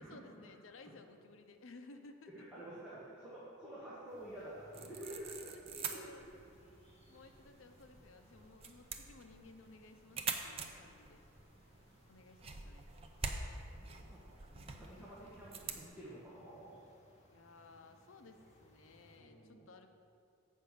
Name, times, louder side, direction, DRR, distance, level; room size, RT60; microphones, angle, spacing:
voice 1, 0.0-2.5 5.5-6.2 6.9-11.2 12.1-12.9 17.3-19.9, left 3 dB, 70° left, 7 dB, 0.6 m, -58 dB
voice 2, 2.3-6.3 11.7-11.8 13.7-16.8 19.2-19.7, right 1 dB, 5° right, -10 dB, 1.4 m, -50 dB
sound 1, 4.1-19.2, equal, 30° left, 1.5 m, -66 dB
sound 2, 4.7-15.9, right 4 dB, 25° right, 0.4 m, -46 dB
7.6 x 5.4 x 6.4 m, 2.5 s
head